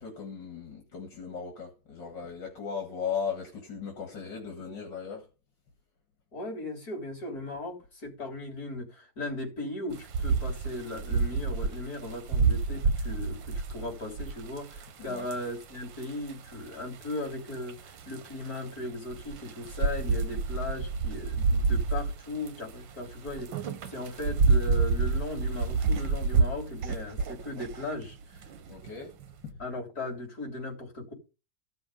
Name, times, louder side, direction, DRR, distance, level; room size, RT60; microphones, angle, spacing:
voice 1, 0.0-5.3 15.1-15.3 28.7-29.1 29.4-29.5, left 6 dB, 75° left, 2.8 m, -37 dB
voice 2, 6.3-23.5 23.9-28.2 29.6-31.1, left 2 dB, 55° left, 4.3 m, -37 dB
sound 1, 9.9-29.3, right 4 dB, 85° right, 1.7 m, -29 dB
14.5 x 6.2 x 5.2 m
omnidirectional pair, 2.0 m